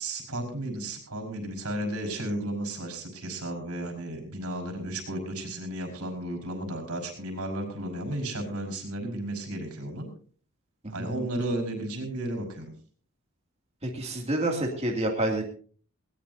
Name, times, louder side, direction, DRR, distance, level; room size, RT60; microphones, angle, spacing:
voice 1, 0.0-10.1 10.9-12.7, right 1 dB, 90° right, 3 dB, 5.1 m, -33 dB
voice 2, 10.8-11.3 13.8-15.4, right 1 dB, 30° right, 0 dB, 2.5 m, -28 dB
20.5 x 18.0 x 2.7 m, 0.44 s
head